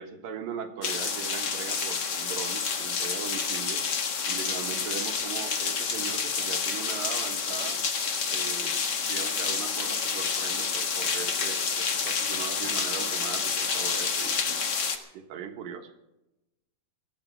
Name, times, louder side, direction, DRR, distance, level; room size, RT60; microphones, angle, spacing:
voice 1, 0.0-3.9 4.3-7.8 8.3-14.6 15.1-16.0, right 7 dB, 75° right, 6 dB, 3.1 m, -39 dB
sound 1, 0.8-15.0, left 5 dB, 50° left, 1.3 m, -29 dB
19.5 x 14.0 x 4.6 m, 0.94 s
omnidirectional pair, 4.0 m